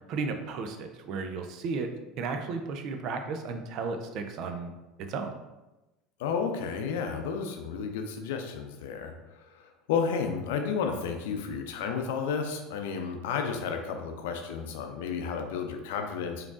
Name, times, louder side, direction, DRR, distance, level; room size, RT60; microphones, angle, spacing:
voice 1, 0.1-4.7 5.1-5.3, right 4 dB, 50° right, 6 dB, 0.5 m, -34 dB
voice 2, 6.2-9.1 9.6-16.5, left 6 dB, 65° left, 4 dB, 0.5 m, -32 dB
4.9 x 3.0 x 2.5 m, 1.0 s
figure-of-eight pair, 70°, 0 cm